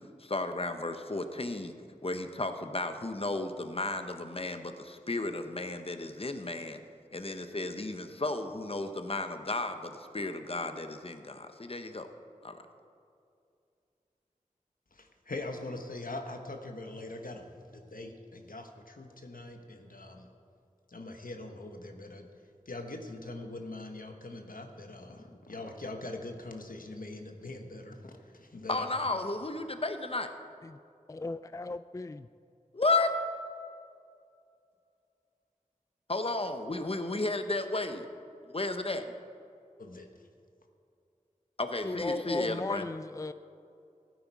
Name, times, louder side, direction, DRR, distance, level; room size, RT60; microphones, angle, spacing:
voice 1, 0.2-1.7 2.0-6.8 7.1-12.1 12.4-12.6 28.7-30.3 32.7-33.1 36.1-38.1 38.4-39.1 41.6-42.8, left 2 dB, 45° left, 1.0 m, -33 dB
voice 2, 14.9-20.3 20.9-29.2 39.8-40.1, left 2 dB, 90° left, 1.2 m, -43 dB
voice 3, 31.1-32.3 41.8-43.3, left 2 dB, 25° left, 0.3 m, -36 dB
16.0 x 9.5 x 4.7 m
wide cardioid pair, 40°, 14 cm